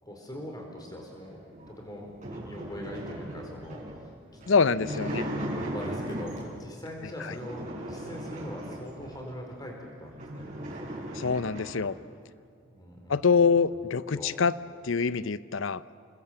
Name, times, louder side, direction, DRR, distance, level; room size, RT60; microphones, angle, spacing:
voice 1, 0.0-1.4 1.8-3.8 4.3-4.7 5.0-5.3 5.6-10.6 12.7-13.3 14.1-14.3, equal, 20° left, 1 dB, 4.6 m, -41 dB
sound 1, 1.5-6.7 7.2-9.3 9.8-9.9 10.1-11.9, right 1 dB, 35° right, 5.1 m, -37 dB
voice 2, 4.5-5.3 7.2-7.4 11.1-11.9 13.1-14.6 14.8-15.8, left 5 dB, 75° left, 16 dB, 0.7 m, -25 dB
28.5 x 21.0 x 7.7 m, 2.2 s
head